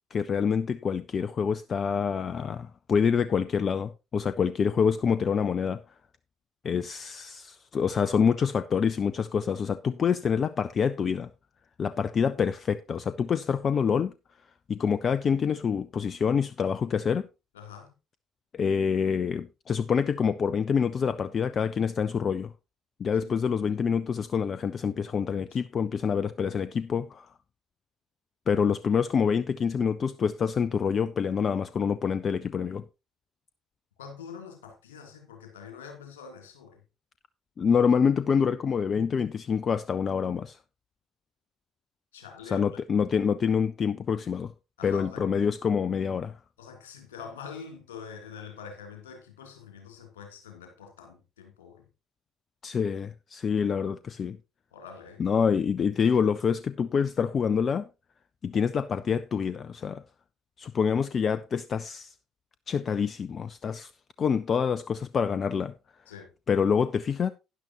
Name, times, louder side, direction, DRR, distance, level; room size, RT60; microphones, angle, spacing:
voice 1, 0.1-5.8 6.6-11.3 11.8-14.1 14.7-17.3 18.5-22.5 23.0-27.3 28.5-32.8 37.6-40.6 42.5-44.5 44.8-46.3 52.6-54.4 55.2-57.9 58.4-60.0 60.6-62.1 62.7-63.9 64.2-65.7 66.5-67.3, left 6 dB, 40° left, 0.5 m, -26 dB
voice 2, 17.5-17.9 23.2-23.3 34.0-36.8 42.1-42.7 44.8-45.2 46.6-51.8 54.7-55.2 66.1-66.3, left 6 dB, 70° left, 3.1 m, -45 dB
12.0 x 10.5 x 3.0 m
figure-of-eight pair, 50°, 0 cm